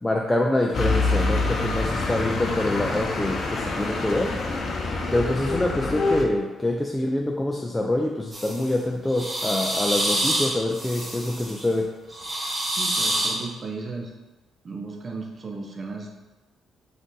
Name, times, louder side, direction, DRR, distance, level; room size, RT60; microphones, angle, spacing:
voice 1, 0.0-4.4 5.1-11.9, left 1 dB, 10° left, 1 dB, 0.4 m, -25 dB
sound 1, 0.7-6.2, left 3 dB, 50° left, 0.7 m, -26 dB
sound 2, 8.3-8.7 9.1-11.6 12.1-13.4, right 1 dB, 20° right, 1.4 m, -27 dB
voice 2, 12.7-14.1 14.6-16.1, right 3 dB, 40° right, 1 dB, 0.6 m, -35 dB
5.1 x 2.6 x 3.8 m, 1.2 s
cardioid pair, 90°, 0 cm